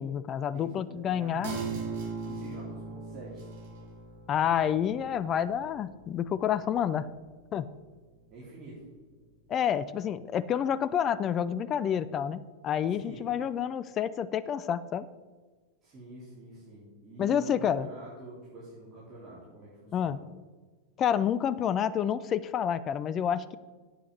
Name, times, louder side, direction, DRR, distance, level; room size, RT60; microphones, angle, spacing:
voice 1, 0.0-1.6 4.3-7.1 7.5-7.7 9.5-15.1 17.2-17.9 19.9-20.2 21.0-23.6, left 9 dB, 30° left, 16 dB, 0.4 m, -29 dB
voice 2, 0.5-1.4 2.3-3.5 8.3-8.8 12.9-13.2 15.8-20.2, right 2 dB, 25° right, -8 dB, 4.2 m, -46 dB
sound 1, 1.4-8.5 8.8-8.9, right 4 dB, 50° right, 3.7 m, -40 dB
8.6 x 8.4 x 7.2 m, 1.4 s
figure-of-eight pair, 90°, 0 cm